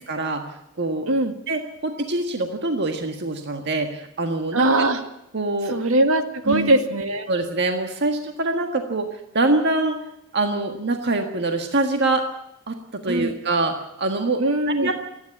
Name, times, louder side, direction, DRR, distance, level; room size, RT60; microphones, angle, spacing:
voice 1, 0.1-0.5 0.8-1.1 1.5-4.9 5.3-5.8 6.5-6.7 7.3-9.1 9.3-10.0 10.3-12.3 12.7-14.4 14.8-14.9, right 2 dB, 55° right, 4 dB, 1.6 m, -24 dB
voice 2, 4.5-5.0 5.6-7.3 13.1-13.3 14.4-14.9, right 1 dB, 70° right, 7 dB, 2.1 m, -21 dB
27.0 x 10.5 x 9.6 m, 0.86 s
head